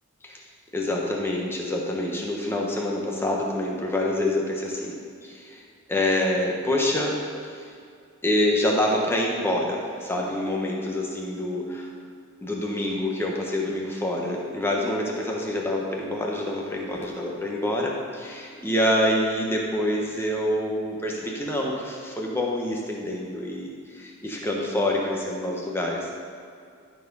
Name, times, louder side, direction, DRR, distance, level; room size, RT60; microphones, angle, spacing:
voice 1, 0.7-4.9 5.2-5.6 5.9-7.2 7.5-7.7 8.2-11.9 12.4-26.1, left 1 dB, 10° left, -2 dB, 1.1 m, -26 dB
12.5 x 4.5 x 5.4 m, 2.3 s
head